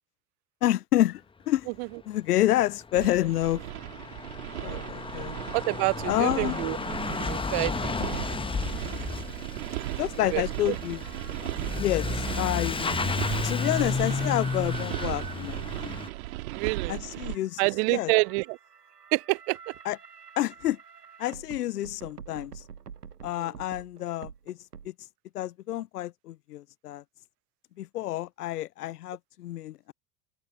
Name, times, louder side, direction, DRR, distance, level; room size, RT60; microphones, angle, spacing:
voice 1, 0.6-1.7 2.1-3.6 4.5-5.3 6.0-6.6 10.0-11.0 11.4-12.9 13.4-16.0 16.9-17.6 17.9-18.1 19.8-20.0 20.4-20.8 21.2-22.6 23.2-24.6 24.8-24.9 25.3-27.0 27.8-29.9, left 14 dB, 80° left, 0.6 m, -29 dB
Truck / Accelerating revving vroom, 2.4-2.5 2.7-16.1, left 4 dB, 10° left, 1.1 m, -33 dB
sound 1, 3.0-17.4, right 18 dB, 65° right, 2.2 m, -36 dB
voice 2, 5.5-6.8 7.2-8.2 10.3-10.8 16.5-16.9 17.6-18.6 19.1-19.7 23.4-23.5, right 33 dB, 45° right, 0.5 m, -28 dB
sound 2, 9.6-24.9, right 7 dB, 90° right, 0.9 m, -48 dB
figure-of-eight pair, 75°, 46 cm